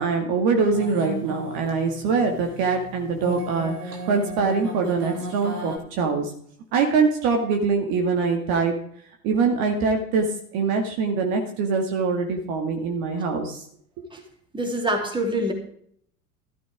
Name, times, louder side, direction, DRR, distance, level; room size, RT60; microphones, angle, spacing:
voice 1, 0.0-6.3 6.7-8.7 9.2-10.3 10.5-13.6, right 4 dB, 50° right, 3 dB, 2.1 m, -23 dB
sound 1, 0.7-5.8, right 2 dB, 85° right, 2.7 m, -35 dB
voice 2, 14.5-15.5, right 1 dB, 10° right, 2 dB, 3.1 m, -25 dB
13.5 x 12.5 x 3.6 m, 0.64 s
figure-of-eight pair, 75°, 46 cm